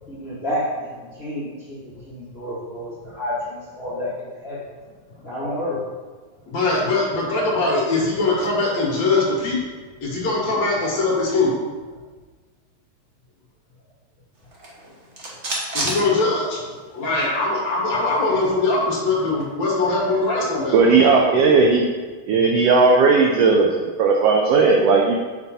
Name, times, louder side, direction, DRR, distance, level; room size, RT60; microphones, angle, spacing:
voice 1, 0.1-4.6 5.2-5.8, left 1 dB, 50° left, -8 dB, 0.7 m, -30 dB
voice 2, 6.5-9.6 10.0-11.6 15.7-16.6 16.9-21.0, left 3 dB, 65° left, -3 dB, 2.7 m, -21 dB
sound 1, 14.5-16.9 17.2-17.3 17.6-19.5, right 2 dB, 60° right, 0.7 m, -32 dB
voice 3, 20.7-21.9 22.3-25.2, right 4 dB, 75° right, 1 dB, 1.5 m, -16 dB
6.8 x 5.4 x 4.2 m, 1.4 s
omnidirectional pair, 3.3 m